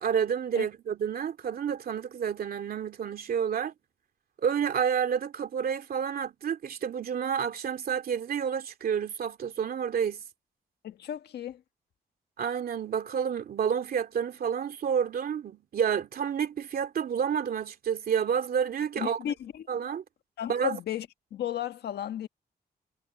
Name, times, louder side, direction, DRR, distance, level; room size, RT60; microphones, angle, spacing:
voice 1, 0.0-3.7 4.4-10.2 12.4-19.2 19.7-20.0 20.5-20.8, right 7 dB, 65° right, 2.5 m, -29 dB
voice 2, 10.8-11.6 19.0-19.8 20.4-22.3, left 11 dB, 85° left, 1.5 m, -34 dB
cardioid pair, 115°, 16 cm